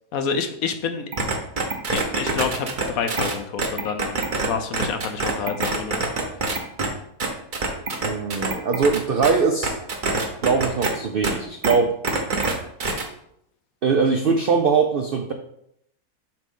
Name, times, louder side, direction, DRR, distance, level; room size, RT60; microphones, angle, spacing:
voice 1, 0.1-1.1 1.9-6.1, left 6 dB, 70° left, 7 dB, 1.1 m, -28 dB
sound 1, 1.1-4.5 4.7-6.9 7.2-9.3 9.6-10.9 11.2-11.3 11.6-11.7 12.0-12.5 12.8-13.0, right 3 dB, 40° right, 0.9 m, -24 dB
voice 2, 8.0-9.7 10.4-11.9 13.8-15.3, right 5 dB, 80° right, 5 dB, 0.5 m, -21 dB
7.5 x 3.2 x 5.3 m, 0.75 s
omnidirectional pair, 1.6 m